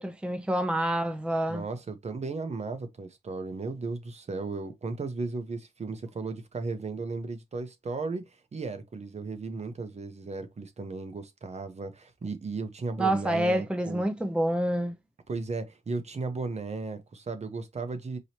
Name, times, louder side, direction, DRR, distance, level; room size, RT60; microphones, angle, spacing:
voice 1, 0.0-1.6 13.0-15.0, right 1 dB, 5° right, 0.6 m, -27 dB
voice 2, 1.5-14.0 15.3-18.2, right 3 dB, 45° right, 0.9 m, -35 dB
4.8 x 3.0 x 2.9 m
cardioid pair, 85°, 15 cm